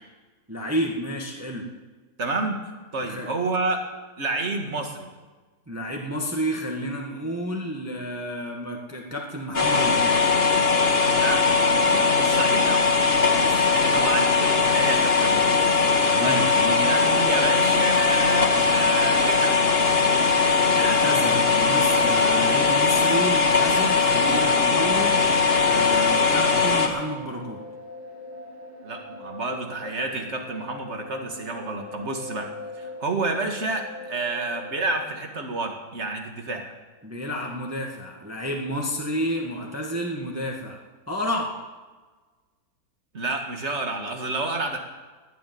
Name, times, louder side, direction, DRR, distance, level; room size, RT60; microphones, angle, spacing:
voice 1, 0.5-1.6 3.0-3.3 5.7-10.1 13.2-13.7 15.8-16.8 20.8-25.2 25.6-27.6 37.0-40.8 41.1-41.5, equal, 10° right, 0 dB, 1.5 m, -30 dB
voice 2, 2.2-2.6 2.9-3.8 4.2-5.1 11.1-12.8 13.6-15.6 16.0-19.7 28.8-32.5 32.8-36.7 43.1-44.8, right 3 dB, 40° right, 4 dB, 2.0 m, -29 dB
sound 1, 9.5-26.9, left 4 dB, 35° left, 1.8 m, -20 dB
sound 2, 26.2-35.1, left 2 dB, 25° right, 3.9 m, -41 dB
19.5 x 6.8 x 9.4 m, 1.3 s
omnidirectional pair, 1.8 m